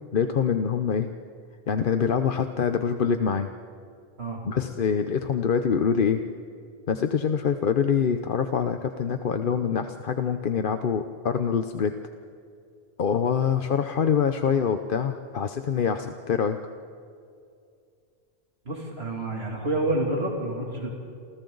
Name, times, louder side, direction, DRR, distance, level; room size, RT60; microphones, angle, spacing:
voice 1, 0.1-1.1 1.7-3.5 4.4-6.2 6.9-11.9 13.0-16.6, left 7 dB, 55° left, 8 dB, 0.9 m, -25 dB
voice 2, 18.6-20.9, right 1 dB, 75° right, -1 dB, 3.1 m, -28 dB
29.0 x 28.5 x 4.0 m, 2.4 s
omnidirectional pair, 1.1 m